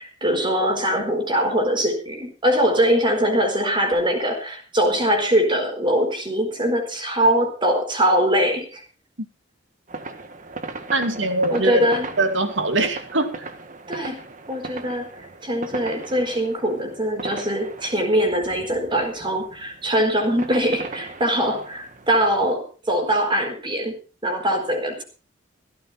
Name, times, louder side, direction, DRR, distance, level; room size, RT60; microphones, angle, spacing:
voice 1, 0.0-8.8 11.5-12.1 13.9-14.2 14.5-24.0 24.2-25.0, equal, 25° right, 3 dB, 4.3 m, -22 dB
sound 1, 9.9-22.6, right 3 dB, 40° right, 1.6 m, -38 dB
voice 2, 10.9-11.9 12.2-13.5, right 2 dB, 75° right, 7 dB, 2.6 m, -22 dB
16.0 x 13.5 x 4.3 m, 0.34 s
head